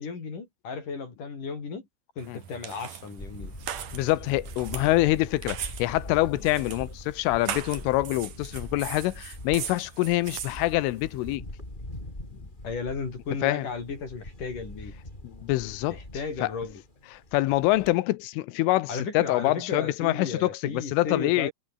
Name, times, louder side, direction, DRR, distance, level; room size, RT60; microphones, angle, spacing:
voice 1, 0.0-1.9 2.2-3.5 12.6-14.9 15.9-16.8 18.9-21.5, left 4 dB, 40° left, 6.2 m, -34 dB
sound 1, 2.2-11.4, right 10 dB, 55° right, 2.9 m, -40 dB
Camera, 3.2-17.9, left 1 dB, 10° left, 6.0 m, -43 dB
voice 2, 3.9-11.5 12.3-12.4 13.4-13.7 15.2-16.0 16.4-16.5 17.3-21.5, left 18 dB, 85° left, 3.5 m, -25 dB
omnidirectional pair, 5.6 m